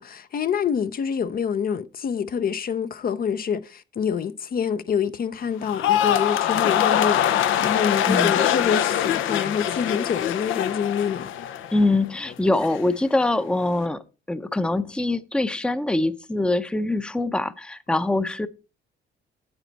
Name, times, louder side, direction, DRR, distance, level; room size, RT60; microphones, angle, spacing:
voice 1, 0.0-11.3, left 7 dB, 50° left, 0.6 m, -26 dB
sound 1, 5.6-12.0 12.3-12.8, left 10 dB, 85° left, 0.7 m, -23 dB
voice 2, 8.1-8.4 11.7-14.0 14.3-18.5, left 2 dB, 5° left, 0.6 m, -23 dB
8.8 x 8.0 x 4.0 m
cardioid pair, 90°, 20 cm